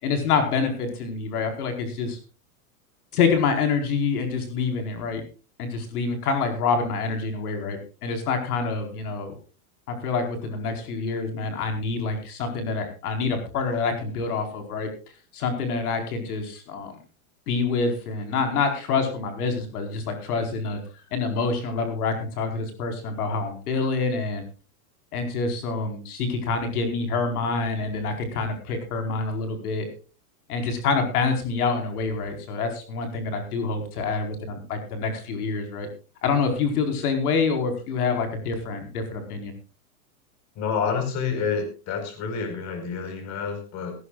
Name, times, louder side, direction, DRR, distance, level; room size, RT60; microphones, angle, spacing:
voice 1, 0.0-2.2 3.1-5.2 5.6-9.3 9.9-14.9 15.3-17.0 17.5-20.8 21.1-24.4 25.1-29.9 30.5-35.9 36.2-39.5, left 4 dB, 80° left, 5 dB, 4.7 m, -26 dB
voice 2, 40.5-43.9, left 6 dB, 40° left, 7 dB, 4.8 m, -28 dB
18.0 x 17.0 x 2.4 m, 0.35 s
supercardioid pair, 145°, 44 cm